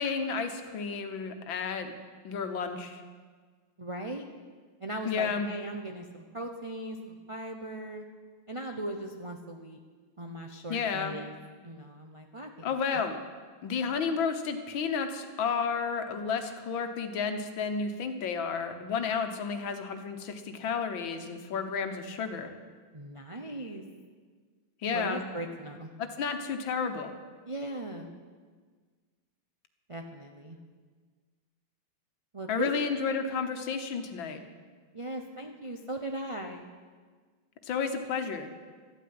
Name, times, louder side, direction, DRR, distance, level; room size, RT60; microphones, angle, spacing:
voice 1, 0.0-1.9 2.2-3.0 5.1-5.5 10.7-11.2 12.6-13.2 13.6-22.5 24.8-25.3 26.0-27.1 32.5-34.4 37.6-38.5, left 5 dB, 75° left, 7 dB, 1.9 m, -32 dB
voice 2, 3.8-4.3 4.8-8.1 8.5-9.8 10.2-11.3 11.6-13.0 22.9-23.8 24.9-25.9 27.4-28.1 29.9-30.6 32.3-32.7 34.9-36.6, right 1 dB, 40° right, 3 dB, 0.4 m, -38 dB
13.5 x 9.3 x 9.6 m, 1.5 s
omnidirectional pair, 2.2 m